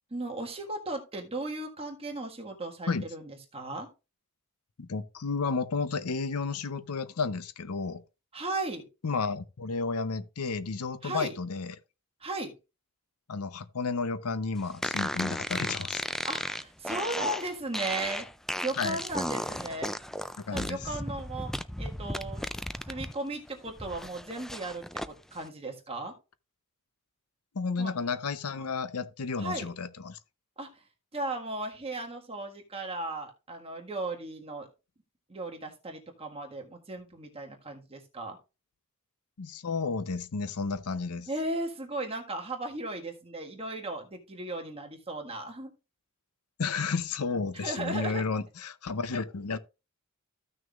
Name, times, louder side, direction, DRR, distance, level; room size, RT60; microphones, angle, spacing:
voice 1, 0.1-3.9 8.3-8.8 11.0-11.3 12.2-12.5 16.2-18.3 18.6-20.0 20.5-21.5 21.8-22.5 22.9-26.1 27.8-27.9 29.4-29.7 30.6-30.8 31.1-34.7 35.3-38.4 41.3-45.7 47.5-48.2, right 2 dB, 25° right, 1.7 m, -36 dB
voice 2, 4.8-8.0 9.0-11.7 13.3-16.0 18.8-19.0 20.4-20.8 27.5-30.2 39.4-41.3 46.6-49.6, left 4 dB, 85° left, 0.7 m, -32 dB
sound 1, 14.8-23.1 23.5-25.1, equal, ahead, 0.3 m, -35 dB
14.5 x 6.2 x 2.4 m
head